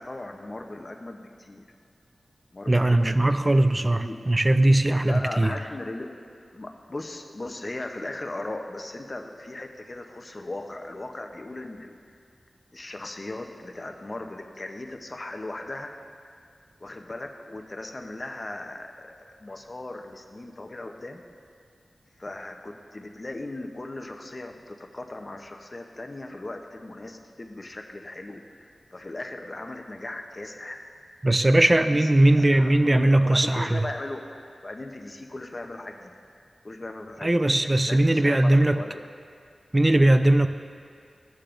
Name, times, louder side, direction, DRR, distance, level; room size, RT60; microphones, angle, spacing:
voice 1, 0.0-1.6 2.5-4.3 5.0-6.2 6.5-11.9 12.7-15.9 16.8-21.2 22.2-30.8 31.5-36.1 36.6-39.0, left 2 dB, 35° left, 4 dB, 0.7 m, -38 dB
voice 2, 2.7-5.5 31.2-33.8 37.2-38.8 39.7-40.5, right 1 dB, 25° right, 9 dB, 0.4 m, -20 dB
15.5 x 6.7 x 2.5 m, 2.2 s
wide cardioid pair, 85°, 0 cm